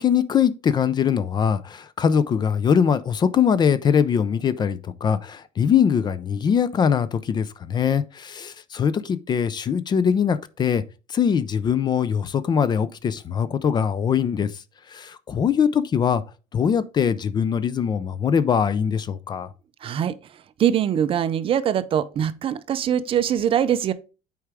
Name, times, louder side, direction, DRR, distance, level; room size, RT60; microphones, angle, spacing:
voice 1, 0.0-10.8 11.1-14.5 14.9-16.2 16.5-19.5, left 7 dB, 30° left, 0.5 m, -22 dB
voice 2, 19.8-20.1 20.6-23.9, right 9 dB, 40° right, 0.5 m, -22 dB
8.1 x 4.7 x 3.5 m
cardioid pair, 155°, 15 cm